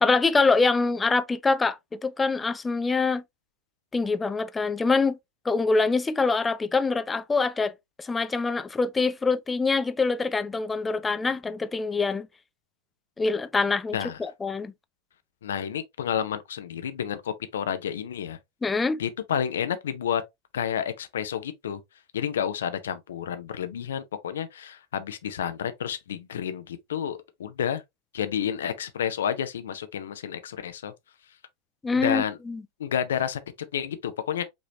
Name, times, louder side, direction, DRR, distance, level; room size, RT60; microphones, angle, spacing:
voice 1, 0.0-3.2 3.9-5.2 5.5-7.7 8.0-12.3 13.2-14.7 18.6-19.0 31.8-32.6, left 4 dB, 15° left, 0.4 m, -25 dB
voice 2, 15.4-18.4 19.0-20.2 20.5-21.8 22.1-27.8 28.1-30.9 31.9-32.4 32.8-34.4, left 8 dB, 65° left, 0.6 m, -30 dB
5.3 x 3.1 x 2.7 m
figure-of-eight pair, 90°, 0 cm